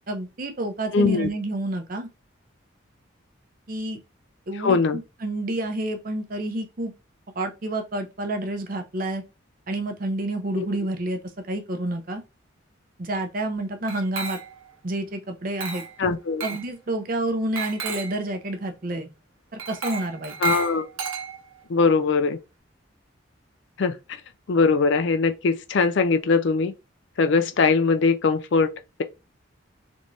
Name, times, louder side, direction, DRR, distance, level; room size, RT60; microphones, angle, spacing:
voice 1, 0.1-2.1 3.7-4.0 4.5-6.9 7.3-9.2 9.7-11.2 11.5-12.2 13.0-14.4 14.8-15.8 16.4-19.1 19.5-20.4, right 1 dB, 45° right, 0.6 m, -29 dB
voice 2, 0.9-1.3 4.6-5.0 10.5-10.7 16.0-16.4 20.4-20.9 21.7-22.4 23.8-24.0 24.5-26.7 27.2-28.7, left 4 dB, 60° left, 0.4 m, -21 dB
Glass, 13.9-14.7 15.6-16.0 16.4-16.7 17.6-18.2 19.6-21.6, right 6 dB, 90° right, 1.0 m, -33 dB
3.4 x 3.0 x 2.6 m
head